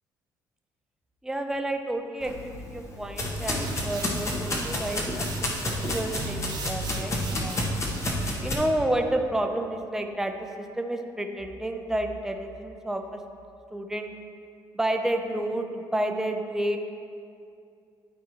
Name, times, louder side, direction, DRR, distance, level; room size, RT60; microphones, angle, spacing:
voice 1, 1.2-7.7 8.4-13.2 13.7-14.1 14.7-16.8, right 1 dB, 5° right, 4 dB, 0.6 m, -30 dB
sound 1, 2.2-8.5, left 1 dB, 35° left, 1.2 m, -30 dB
sound 2, 3.3-8.5, right 6 dB, 55° right, 0.7 m, -42 dB
12.0 x 4.5 x 3.0 m, 2.4 s
cardioid pair, 100°, 8 cm